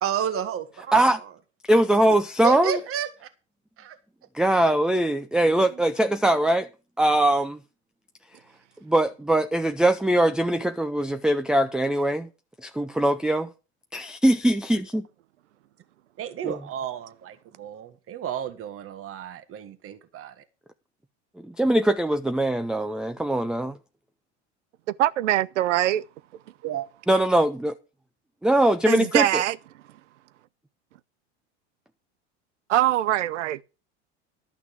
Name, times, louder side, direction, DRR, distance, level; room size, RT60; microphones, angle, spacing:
voice 1, 0.0-1.3 2.4-3.3 3.8-4.0 5.4-5.8 16.2-20.4 26.6-26.9, right 9 dB, 40° right, 1.7 m, -32 dB
voice 2, 1.7-2.8 4.3-6.7 7.0-7.6 8.8-12.3 12.6-13.5 13.9-15.1 16.4-16.6 21.4-23.8 27.1-27.7 28.4-29.4, right 1 dB, ahead, 0.6 m, -22 dB
voice 3, 25.0-26.0 28.9-29.6 32.7-33.6, right 13 dB, 85° right, 0.8 m, -22 dB
12.0 x 6.0 x 7.3 m
hypercardioid pair, 95°, 35 cm